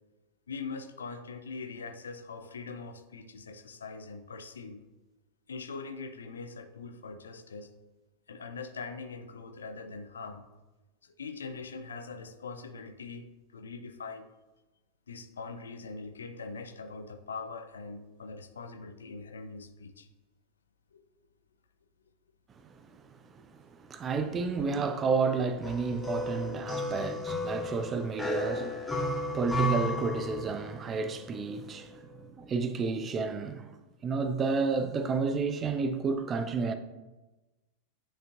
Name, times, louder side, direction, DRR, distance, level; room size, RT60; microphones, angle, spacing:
voice 1, 0.5-4.8 5.5-7.7 8.3-10.5 11.0-14.3 15.1-20.1 20.9-21.0, left 4 dB, 70° left, 0.5 m, -42 dB
voice 2, 22.7-23.0 23.3-36.8, right 4 dB, 25° right, 0.5 m, -31 dB
sound 1, 25.6-30.8, left 1 dB, 5° left, 0.9 m, -33 dB
8.8 x 5.1 x 2.5 m
figure-of-eight pair, 90°, 0 cm